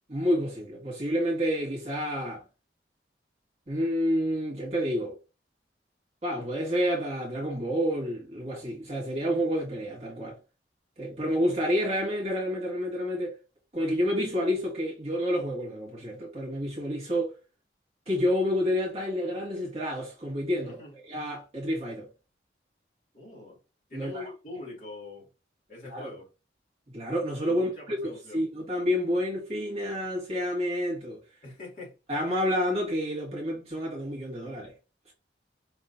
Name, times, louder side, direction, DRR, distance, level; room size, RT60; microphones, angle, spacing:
voice 1, 0.1-2.4 3.7-5.2 6.2-10.4 11.0-13.4 13.7-17.4 18.1-22.1 23.9-24.3 25.8-26.1 26.9-31.2 32.1-34.7, equal, 35° right, 1.8 m, -29 dB
voice 2, 20.6-20.9 23.1-23.6 23.9-25.3 25.7-26.2 27.5-28.4 31.4-31.9, left 3 dB, 45° left, 2.5 m, -43 dB
4.9 x 3.7 x 2.7 m
head